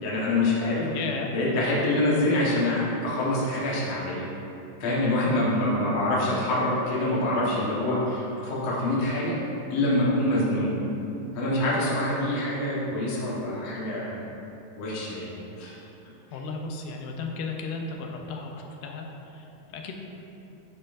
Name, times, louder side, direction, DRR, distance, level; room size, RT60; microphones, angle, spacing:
voice 1, 0.0-0.9 1.3-4.2 4.8-9.4 9.7-10.7 11.3-14.2 14.8-15.8, left 1 dB, 55° left, -7 dB, 2.1 m, -25 dB
voice 2, 0.9-1.3 16.3-19.9, left 4 dB, 75° left, 2 dB, 2.1 m, -35 dB
12.0 x 4.5 x 2.6 m, 2.8 s
omnidirectional pair, 4.0 m